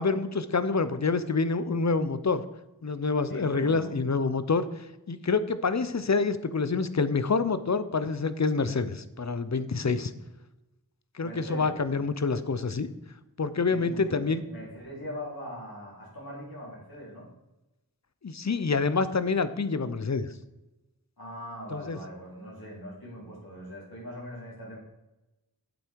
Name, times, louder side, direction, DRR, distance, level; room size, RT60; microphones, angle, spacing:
voice 1, 0.0-2.4 2.8-10.1 11.1-12.9 13.4-14.4 18.2-20.3 21.7-22.0, left 4 dB, 50° left, 13 dB, 0.7 m, -27 dB
voice 2, 3.3-3.9 11.2-12.0 13.6-17.3 21.2-24.8, equal, 75° left, -6 dB, 3.8 m, -41 dB
8.4 x 7.9 x 4.6 m, 0.99 s
wide cardioid pair, 45°, 36 cm